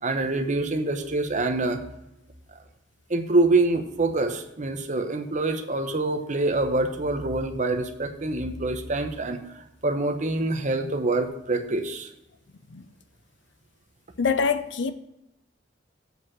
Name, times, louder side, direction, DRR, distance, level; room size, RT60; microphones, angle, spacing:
voice 1, 0.0-1.8 3.1-12.1, right 2 dB, 40° right, 0.9 m, -25 dB
voice 2, 14.2-14.9, left 5 dB, 70° left, 0.7 m, -24 dB
7.9 x 5.3 x 6.2 m
head